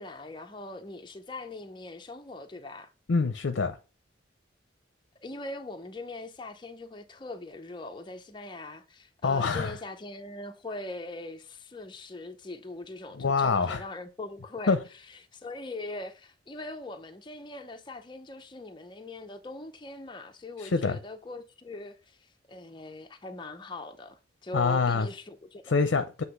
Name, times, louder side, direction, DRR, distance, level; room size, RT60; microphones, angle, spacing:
voice 1, 0.0-2.9 5.2-14.8 15.1-25.8, left 2 dB, 25° left, 0.6 m, -41 dB
voice 2, 3.1-3.8 9.2-9.7 13.2-13.8 14.7-14.8 20.6-21.0 24.5-25.1 25.7-26.2, left 4 dB, 75° left, 0.6 m, -25 dB
8.0 x 2.9 x 5.9 m
head